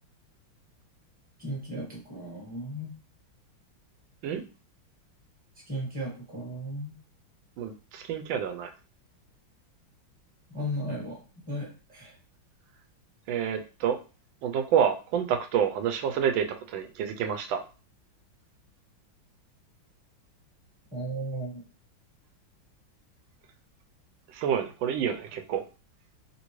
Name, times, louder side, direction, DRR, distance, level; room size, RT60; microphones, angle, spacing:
voice 1, 1.4-2.9 5.7-7.0 10.5-12.2 20.9-21.6, equal, 5° right, -3 dB, 0.9 m, -35 dB
voice 2, 7.6-8.7 13.3-14.0 14.4-17.6 24.3-25.6, right 8 dB, 75° right, 6 dB, 1.3 m, -28 dB
3.4 x 2.6 x 3.0 m, 0.33 s
omnidirectional pair, 2.2 m